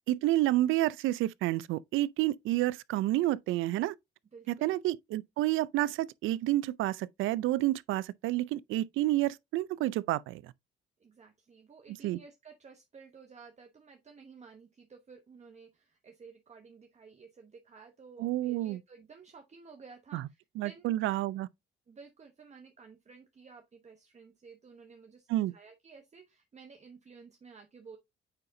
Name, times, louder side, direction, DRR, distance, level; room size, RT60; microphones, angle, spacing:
voice 1, 0.1-3.9 4.5-10.5 12.0-12.2 18.2-18.8 20.1-20.2 20.6-21.5 25.3-25.5, right 15 dB, 85° right, 0.4 m, -29 dB
voice 2, 4.3-4.8 11.0-20.9 21.9-28.0, right 5 dB, 35° right, 1.0 m, -53 dB
8.8 x 4.1 x 2.6 m
cardioid pair, 90°, 20 cm